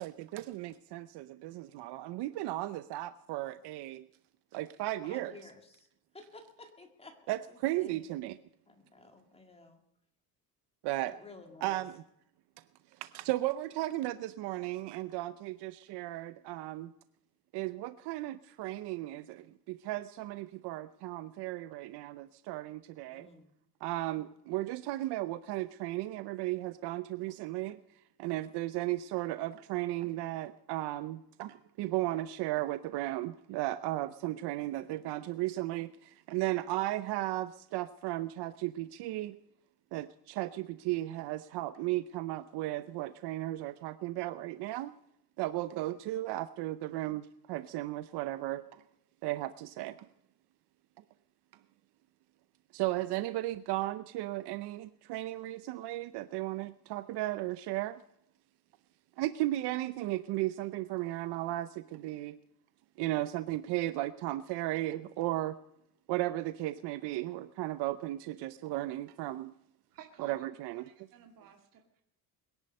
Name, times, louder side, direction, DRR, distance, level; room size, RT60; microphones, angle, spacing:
voice 1, 0.0-4.1 4.5-5.3 7.3-8.4 10.8-11.1 11.6-12.0 13.0-16.9 17.5-23.3 23.8-27.8 28.2-39.4 39.9-44.9 45.4-48.8 49.2-50.0 52.7-58.0 59.2-62.4 63.0-65.6 66.1-69.5 70.2-70.8, right 16 dB, 85° right, 13 dB, 0.7 m, -35 dB
voice 2, 5.0-5.9 6.1-8.1 8.7-9.8 11.1-11.9 23.1-23.5 24.3-24.4, left 3 dB, 15° left, 5 dB, 2.1 m, -53 dB
voice 3, 69.9-72.0, right 8 dB, 55° right, 3 dB, 2.3 m, -54 dB
21.5 x 11.0 x 5.3 m, 0.81 s
cardioid pair, 160°, 39 cm